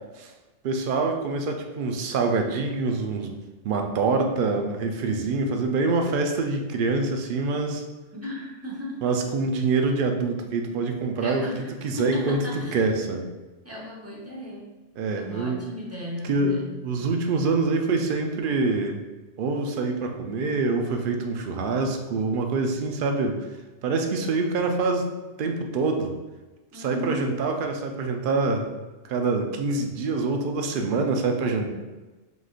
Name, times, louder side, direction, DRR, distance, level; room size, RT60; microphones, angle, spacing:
voice 1, 0.6-7.8 9.0-11.5 11.8-12.4 12.7-13.3 15.0-15.6 16.2-19.0 19.4-23.5 23.8-25.1 25.4-26.1 26.7-28.7 29.0-31.7, right 3 dB, 55° right, 4 dB, 0.6 m, -25 dB
voice 2, 8.1-9.1 11.2-11.7 12.0-12.9 13.6-14.7 15.1-16.9 26.7-27.3, equal, 15° right, -4 dB, 0.7 m, -36 dB
5.0 x 3.8 x 2.4 m, 1.2 s
omnidirectional pair, 1.3 m